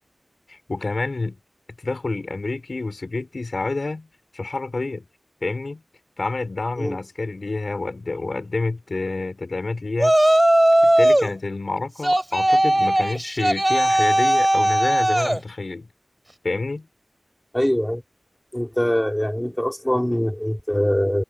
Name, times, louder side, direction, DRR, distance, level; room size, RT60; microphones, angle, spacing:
voice 1, 0.5-1.4 1.8-4.1 4.3-5.1 5.4-5.8 6.2-10.1 10.8-15.9 16.4-16.9, left 3 dB, 65° left, 5.5 m, -28 dB
Yell, 10.0-11.3 12.0-15.4, right 1 dB, 20° right, 4.0 m, -18 dB
voice 2, 17.5-18.0 18.5-21.2, equal, 10° left, 3.5 m, -23 dB
wide cardioid pair, 50°, 0 cm